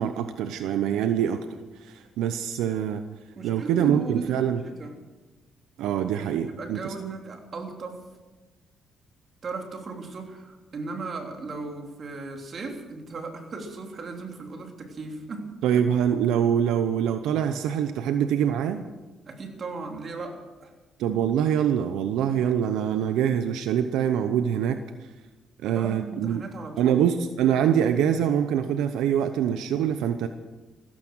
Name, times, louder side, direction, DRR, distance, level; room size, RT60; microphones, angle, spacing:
voice 1, 0.0-3.0 3.4-4.6 5.8-6.9 15.6-18.8 21.0-25.1 25.6-26.4 26.8-30.3, right 9 dB, 90° right, 9 dB, 0.8 m, -24 dB
voice 2, 3.4-4.9 6.5-8.0 9.4-15.5 19.3-20.7 25.7-27.0, right 3 dB, 50° right, 3 dB, 3.2 m, -36 dB
16.0 x 15.0 x 6.2 m, 1.2 s
cardioid pair, 90°, 0 cm